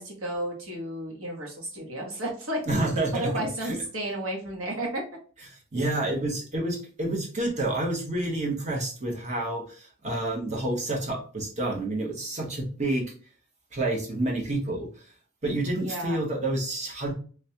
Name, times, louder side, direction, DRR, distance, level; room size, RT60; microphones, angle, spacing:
voice 1, 0.0-2.6 3.1-5.0 15.8-16.2, right 1 dB, 80° right, -2 dB, 1.2 m, -32 dB
voice 2, 2.7-3.3 3.6-3.8 5.5-13.0 13.7-14.9 15.4-17.1, right 2 dB, 35° right, -1 dB, 1.0 m, -29 dB
3.3 x 3.1 x 2.8 m, 0.41 s
head